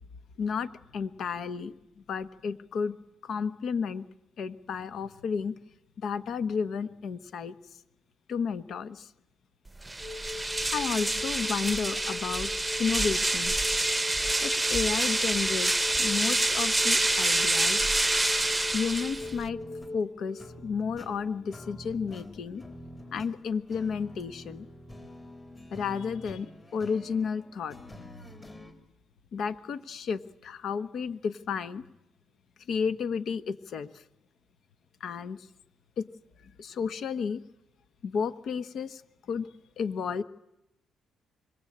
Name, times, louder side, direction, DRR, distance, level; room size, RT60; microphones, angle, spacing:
voice 1, 0.4-1.7 2.1-3.0 3.2-4.1 4.4-5.6 6.0-7.5 8.3-9.1 10.7-12.5 12.8-13.5 14.4-17.9 18.7-19.6 19.9-22.6 23.1-24.7 25.7-27.8 29.3-31.8 32.7-34.0 35.0-35.5 36.0-36.1 36.4-37.4 38.0-39.0 39.3-39.5 39.8-40.2, left 6 dB, 65° left, 12 dB, 1.3 m, -32 dB
sound 1, 9.8-19.5, right 2 dB, 10° right, 0.9 m, -27 dB
sound 2, 10.0-22.4 24.2-24.3, left 3 dB, 40° left, 4.3 m, -41 dB
sound 3, 19.2-28.7, equal, 20° left, 4.0 m, -47 dB
25.5 x 23.5 x 8.8 m, 0.88 s
cardioid pair, 90°, 0 cm